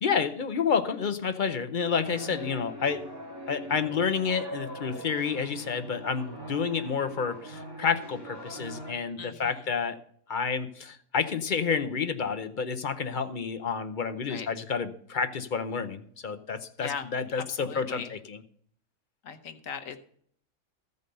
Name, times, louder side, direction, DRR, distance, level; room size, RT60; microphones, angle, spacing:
voice 1, 0.0-3.0 3.5-10.0 10.3-18.4, left 6 dB, 45° left, 9 dB, 0.7 m, -29 dB
sound 1, 1.8-8.9, right 1 dB, 15° right, 2.5 m, -42 dB
voice 2, 9.2-9.7 14.2-14.5 16.8-17.0 17.4-18.1 19.2-20.0, left 6 dB, 65° left, 8 dB, 1.3 m, -38 dB
14.0 x 5.4 x 6.6 m, 0.62 s
omnidirectional pair, 1.5 m